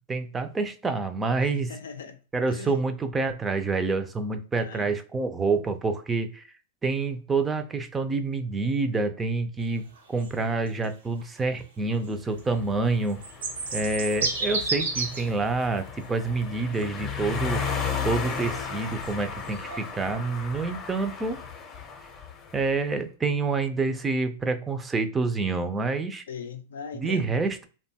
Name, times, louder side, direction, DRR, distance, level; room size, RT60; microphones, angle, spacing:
voice 1, 0.1-1.7 2.3-6.4 6.8-13.2 13.7-17.7 18.0-21.4 22.5-26.2 26.9-27.7, right 3 dB, 15° right, 0.4 m, -27 dB
voice 2, 1.4-2.2 2.5-2.8 4.6-4.9 26.3-27.4, left 6 dB, 85° left, 0.4 m, -39 dB
sound 1, 10.0-10.3 10.7-10.9 11.2-11.3 11.9-12.0 12.4-12.5 13.1-15.3 15.7-15.8 16.8-16.9 17.8-19.1 19.4-19.9, right 3 dB, 85° right, 0.7 m, -31 dB
sound 2, 12.4-22.7, left 6 dB, 30° left, 0.6 m, -35 dB
2.6 x 2.2 x 2.7 m
hypercardioid pair, 115°, 0 cm